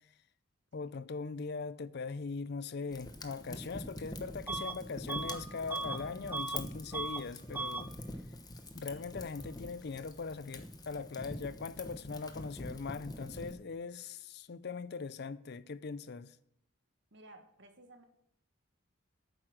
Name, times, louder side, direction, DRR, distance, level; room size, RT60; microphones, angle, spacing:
voice 1, 0.7-7.9 8.7-16.4, left 4 dB, 55° left, 0.5 m, -41 dB
Fire, 2.9-13.6, left 1 dB, 20° left, 1.0 m, -45 dB
Bus / Alarm, 4.5-4.8 5.1-6.6 6.9-7.3 7.5-7.9, right 3 dB, 10° right, 0.4 m, -38 dB
voice 2, 17.1-18.0, right 1 dB, 60° right, 1.7 m, -57 dB
11.5 x 9.0 x 6.4 m
head